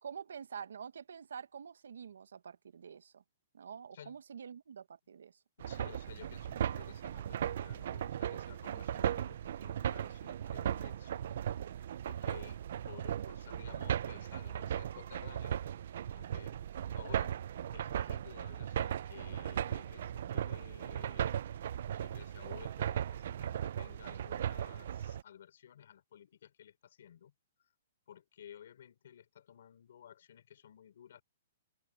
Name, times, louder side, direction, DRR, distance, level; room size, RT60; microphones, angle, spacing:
voice 1, 0.0-3.2 3.5-5.4 13.1-13.4, right 7 dB, 85° right, 1.3 m, -47 dB
voice 2, 5.6-11.5 12.1-15.6 16.1-16.6 16.9-17.4 17.7-21.3 22.0-27.3 28.1-31.2, left 9 dB, 65° left, 4.0 m, -55 dB
sound 1, 5.6-25.2, right 10 dB, 60° right, 0.6 m, -37 dB
hypercardioid pair, 150°, 0 cm